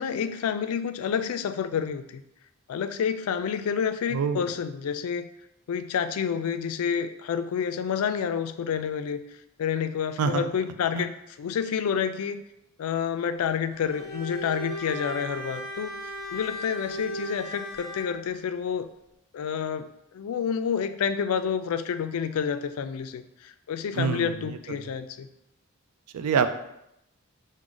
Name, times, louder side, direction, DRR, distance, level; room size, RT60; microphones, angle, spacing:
voice 1, 0.0-2.2 2.7-5.3 5.7-9.2 9.6-12.4 12.8-15.9 16.3-18.9 19.3-25.3, left 7 dB, 75° left, 9 dB, 0.3 m, -29 dB
voice 2, 4.1-4.5 10.2-10.5 10.9-11.0 23.9-24.8 26.1-26.5, right 6 dB, 85° right, 10 dB, 0.4 m, -26 dB
Bowed string instrument, 13.7-18.2, equal, 70° right, 1.3 m, -36 dB
6.0 x 2.1 x 3.8 m, 0.83 s
head